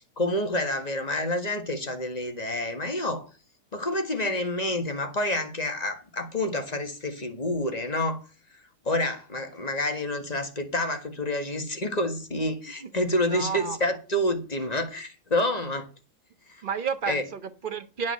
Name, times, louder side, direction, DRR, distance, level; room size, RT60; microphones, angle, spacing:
voice 1, 0.2-3.3 3.7-8.2 8.8-15.9 16.5-16.6 17.1-17.2, left 1 dB, 30° left, 1.8 m, -28 dB
voice 2, 13.2-13.8 16.6-18.1, right 6 dB, 40° right, 1.1 m, -31 dB
9.3 x 5.3 x 7.7 m
omnidirectional pair, 1.5 m